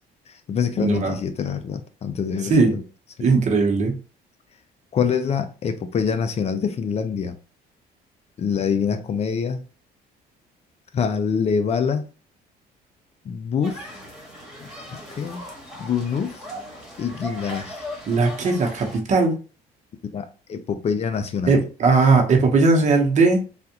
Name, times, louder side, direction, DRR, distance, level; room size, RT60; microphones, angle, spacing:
voice 1, 0.3-2.8 3.2-3.3 4.9-7.4 8.4-9.6 10.9-12.1 13.2-13.9 14.6-15.4 15.8-16.5 17.0-17.9 20.1-21.6, left 6 dB, 40° left, 0.5 m, -25 dB
voice 2, 0.8-1.1 2.5-2.7 3.2-3.9 18.1-19.3 21.5-23.4, right 3 dB, 45° right, 0.9 m, -18 dB
sound 1, 13.6-19.0, equal, ahead, 1.5 m, -38 dB
3.5 x 2.4 x 2.8 m
cardioid pair, 110°, 17 cm